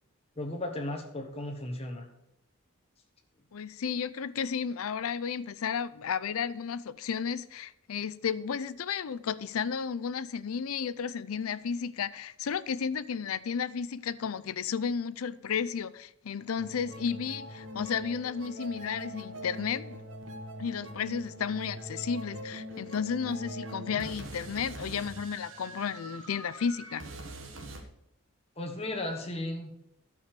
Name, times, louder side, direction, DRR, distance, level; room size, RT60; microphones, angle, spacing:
voice 1, 0.4-2.1 28.6-29.7, left 1 dB, 30° left, 1.2 m, -35 dB
voice 2, 3.5-20.0 20.6-27.1, left 6 dB, 85° left, 0.5 m, -33 dB
sound 1, 16.6-27.8, equal, 65° right, 1.4 m, -43 dB
11.0 x 4.9 x 6.7 m
head